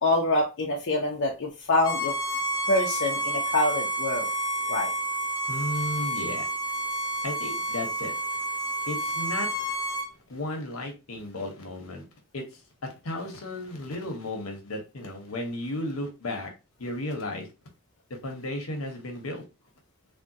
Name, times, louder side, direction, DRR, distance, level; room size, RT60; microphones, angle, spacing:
voice 1, 0.0-2.1 2.7-4.3 4.7-4.9, left 2 dB, 60° left, -2 dB, 0.6 m, -25 dB
Bowed string instrument, 1.8-10.1, right 1 dB, 20° left, 0.5 m, -30 dB
voice 2, 5.5-6.5 7.2-8.1 8.9-9.5 10.3-12.1 12.3-12.6 13.0-16.5 16.8-17.5 18.1-19.4, left 1 dB, 80° left, 2 dB, 1.0 m, -34 dB
3.5 x 2.2 x 2.7 m, 0.28 s
head